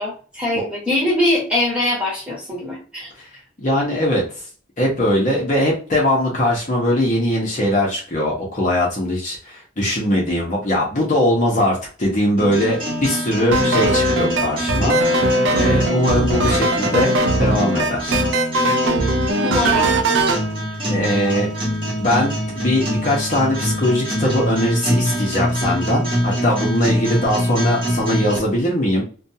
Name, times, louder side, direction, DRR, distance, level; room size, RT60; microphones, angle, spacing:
voice 1, 0.0-3.1 19.4-20.0 21.2-21.4, left 1 dB, 5° right, -5 dB, 1.2 m, -22 dB
voice 2, 3.6-4.2 4.8-17.1 17.4-18.2 20.9-21.5 22.0-29.0, left 1 dB, 40° left, -3 dB, 0.8 m, -20 dB
sound 1, 12.4-28.4, equal, 25° right, 1.0 m, -25 dB
sound 2, 13.5-20.4, right 1 dB, 75° right, 0.4 m, -19 dB
2.5 x 2.2 x 2.7 m, 0.39 s
head